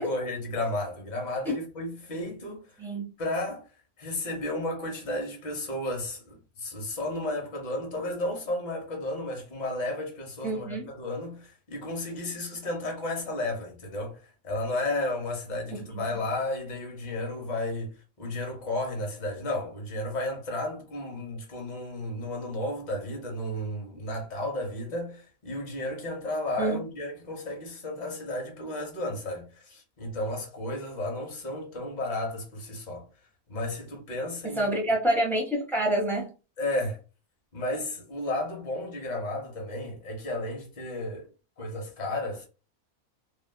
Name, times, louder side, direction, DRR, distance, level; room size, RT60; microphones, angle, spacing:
voice 1, 0.0-2.8 3.2-3.7 4.0-33.1 33.5-34.7 36.6-37.0 37.5-41.3 41.6-42.4, left 1 dB, 40° left, 0.8 m, -33 dB
voice 2, 10.4-10.9 15.7-16.0 26.6-26.8 34.5-36.3, right 1 dB, ahead, 0.7 m, -27 dB
2.7 x 2.4 x 2.2 m
omnidirectional pair, 1.6 m